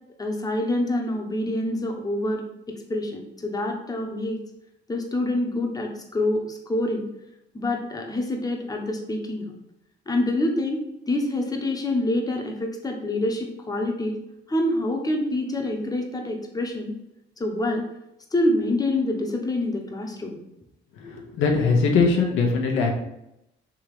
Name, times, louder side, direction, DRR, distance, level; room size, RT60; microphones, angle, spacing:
voice 1, 0.2-2.4 2.9-4.4 4.9-7.1 7.5-9.5 10.1-14.2 14.5-16.9 17.4-17.9 18.3-20.4, left 1 dB, 20° left, 2 dB, 1.0 m, -26 dB
voice 2, 20.9-22.9, left 4 dB, 85° left, 1 dB, 1.0 m, -21 dB
3.7 x 3.0 x 4.8 m, 0.82 s
cardioid pair, 90°, 20 cm